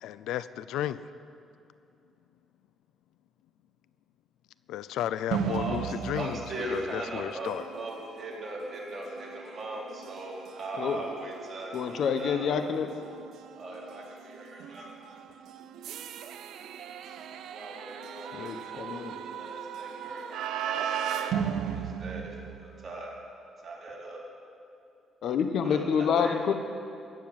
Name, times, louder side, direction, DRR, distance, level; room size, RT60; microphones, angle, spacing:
voice 1, 0.0-1.1 4.7-6.4 6.7-7.6, left 11 dB, 90° left, 15 dB, 0.5 m, -33 dB
sound 1, 5.3-23.0, right 8 dB, 80° right, 0.6 m, -37 dB
voice 2, 5.5-12.6 13.6-14.9 17.5-23.1 23.6-24.2 25.6-26.5, right 2 dB, 40° right, -4 dB, 4.1 m, -40 dB
voice 3, 11.7-12.9 18.3-19.2 25.2-26.5, left 7 dB, 70° left, 7 dB, 1.2 m, -27 dB
15.5 x 7.2 x 9.6 m, 2.6 s
cardioid pair, 90°, 0 cm